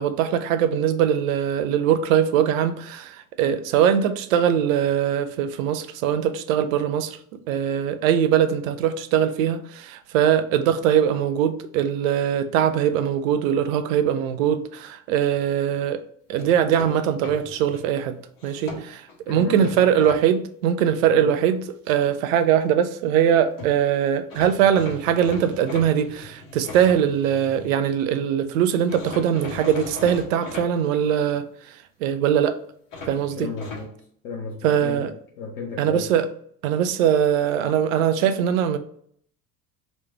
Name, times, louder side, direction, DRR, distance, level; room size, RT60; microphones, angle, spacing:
voice 1, 0.0-7.2 7.5-16.0 16.3-18.2 18.4-32.6 33.1-33.5 34.6-35.1 35.8-36.3 36.6-38.8, right 9 dB, 65° right, 0.5 m, -21 dB
sound 1, 16.4-17.8 18.4-19.2 19.6-20.2 23.3-23.4 23.6-23.7 24.3-27.8 28.9-30.7 32.9-33.9, left 3 dB, 50° left, 1.3 m, -38 dB
voice 2, 19.3-19.8 21.1-21.4 33.4-34.0 34.2-36.1, left 4 dB, 70° left, 0.8 m, -34 dB
3.1 x 3.0 x 3.3 m
figure-of-eight pair, 65°, 44 cm